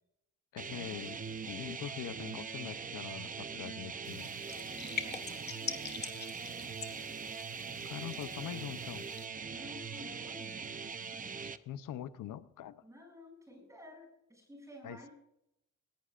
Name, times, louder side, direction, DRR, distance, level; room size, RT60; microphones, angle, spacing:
voice 1, 0.5-4.3 7.8-9.1 11.7-12.8 14.8-15.0, left 11 dB, 85° left, 12 dB, 0.8 m, -43 dB
sound 1, 0.6-11.6, right 6 dB, 25° right, 0.6 m, -42 dB
sound 2, 4.0-9.3, left 6 dB, 30° left, 1.6 m, -44 dB
voice 2, 4.5-6.2 9.5-11.5 12.8-15.1, left 1 dB, 10° right, 0 dB, 7.4 m, -53 dB
20.5 x 19.5 x 2.5 m, 0.81 s
wide cardioid pair, 165°, 32 cm